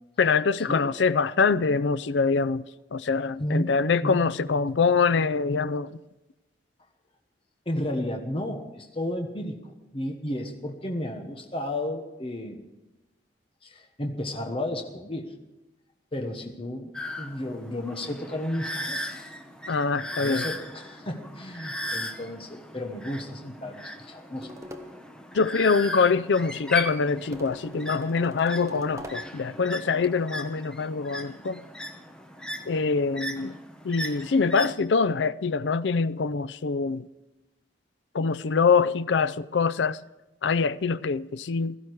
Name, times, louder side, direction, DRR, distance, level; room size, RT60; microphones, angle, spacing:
voice 1, 0.2-2.6 2.9-5.9 19.7-20.5 25.3-31.6 32.7-33.5 33.8-37.1 38.1-40.0 40.4-41.8, left 5 dB, 80° left, 0.5 m, -24 dB
voice 2, 3.4-3.7 4.0-4.2 7.7-12.6 13.6-15.3 16.1-16.9 17.2-19.1 20.2-24.5, left 1 dB, 30° left, 1.2 m, -33 dB
sound 1, 16.9-34.7, equal, 5° left, 1.0 m, -38 dB
sound 2, 24.4-25.1 27.3-29.5, equal, 15° right, 1.1 m, -42 dB
16.5 x 14.5 x 4.7 m
head